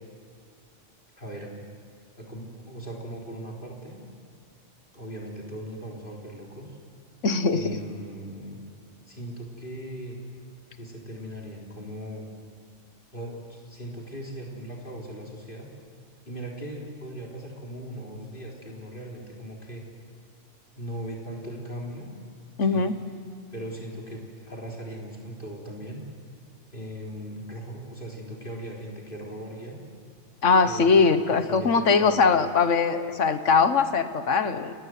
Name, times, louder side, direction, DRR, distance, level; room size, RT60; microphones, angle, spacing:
voice 1, 1.2-1.5 2.2-4.0 4.9-6.8 7.5-8.6 9.1-10.2 10.7-12.3 13.1-15.7 16.3-19.8 20.8-22.1 22.6-22.9 23.5-26.0 26.7-29.8 30.6-31.0 31.3-32.2, equal, 45° left, -2 dB, 4.0 m, -38 dB
voice 2, 7.2-7.8 22.6-22.9 30.4-34.7, left 5 dB, 80° left, 10 dB, 1.6 m, -21 dB
29.5 x 19.5 x 7.7 m, 2.3 s
omnidirectional pair, 1.2 m